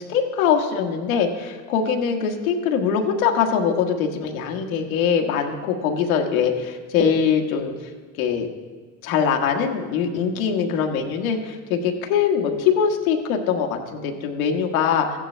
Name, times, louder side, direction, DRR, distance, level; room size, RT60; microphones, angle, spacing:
voice 1, 0.0-7.7 8.2-8.5 9.0-15.2, left 7 dB, 80° left, 3 dB, 1.6 m, -22 dB
14.5 x 10.0 x 3.4 m, 1.5 s
supercardioid pair, 105°, 41 cm